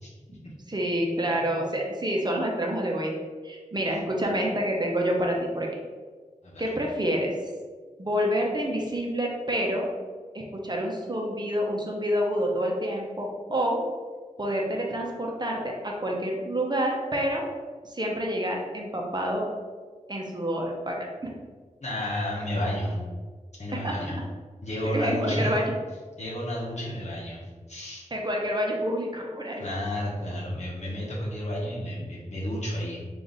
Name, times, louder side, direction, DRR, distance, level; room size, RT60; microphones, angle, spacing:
voice 1, 0.7-3.2 3.4-5.7 6.6-7.3 8.0-9.9 10.3-13.8 14.4-17.5 17.8-19.5 20.1-21.0 23.8-24.2 24.9-25.7 26.8-26.9 28.1-29.6, equal, 30° right, -1 dB, 0.7 m, -28 dB
voice 2, 21.8-23.0 23.6-24.1 24.6-25.5 26.2-28.0 29.6-33.0, equal, 55° left, -6 dB, 0.9 m, -31 dB
3.3 x 2.5 x 4.0 m, 1.5 s
wide cardioid pair, 60°, 14 cm